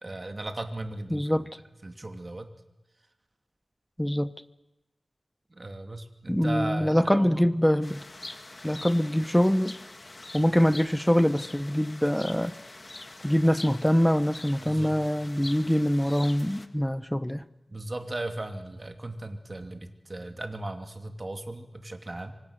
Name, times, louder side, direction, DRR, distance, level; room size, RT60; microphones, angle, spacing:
voice 1, 0.0-1.5 1.8-2.5 5.5-7.4 14.6-14.9 17.7-22.3, right 2 dB, 40° right, 2.7 m, -36 dB
voice 2, 1.1-1.5 4.0-4.3 6.3-8.0 8.6-9.8 10.3-12.5 13.2-17.4, equal, 5° left, 1.0 m, -24 dB
sound 1, 7.8-16.7, left 2 dB, 40° left, 1.7 m, -44 dB
25.5 x 25.0 x 6.6 m
wide cardioid pair, 65°, 0 cm